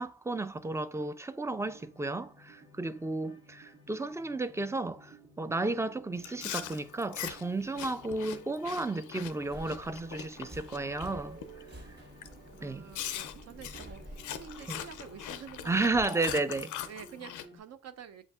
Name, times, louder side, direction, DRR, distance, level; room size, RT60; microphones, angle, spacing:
voice 1, 0.0-11.4 12.6-12.9 14.7-14.8 15.7-16.7, right 2 dB, 10° right, 0.3 m, -33 dB
sound 1, 1.5-17.6, right 1 dB, 85° right, 1.6 m, -56 dB
Chewing mastication, 6.2-11.1 11.4-11.7 12.2-12.3 12.9-17.5, left 11 dB, 90° left, 0.4 m, -41 dB
Subway metro underground, 9.4-16.0, right 1 dB, 35° right, 1.3 m, -50 dB
voice 2, 12.6-16.4 16.8-18.3, right 7 dB, 60° right, 0.6 m, -48 dB
7.2 x 2.5 x 2.3 m
cardioid pair, 65°, 29 cm